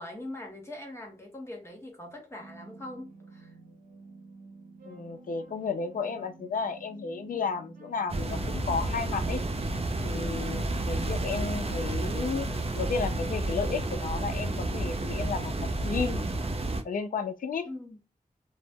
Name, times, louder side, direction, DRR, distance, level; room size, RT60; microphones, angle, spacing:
voice 1, 0.0-3.5 17.6-18.0, left 1 dB, 20° left, 0.9 m, -42 dB
sound 1, 2.4-14.1, right 3 dB, 85° right, 0.6 m, -51 dB
voice 2, 4.9-9.4 10.0-12.5 12.7-16.2 16.8-17.7, left 5 dB, 75° left, 0.4 m, -33 dB
sound 2, 8.1-16.8, right 2 dB, 45° right, 0.4 m, -31 dB
2.0 x 2.0 x 3.4 m
wide cardioid pair, 80°, 15 cm